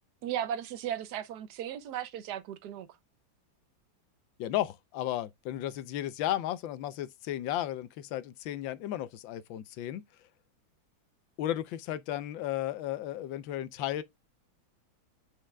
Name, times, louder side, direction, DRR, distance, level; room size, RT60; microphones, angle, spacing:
voice 1, 0.2-2.9, right 10 dB, 65° right, 1.3 m, -36 dB
voice 2, 4.4-10.0 11.4-14.0, left 13 dB, 75° left, 1.4 m, -34 dB
7.5 x 4.9 x 3.4 m
omnidirectional pair, 2.2 m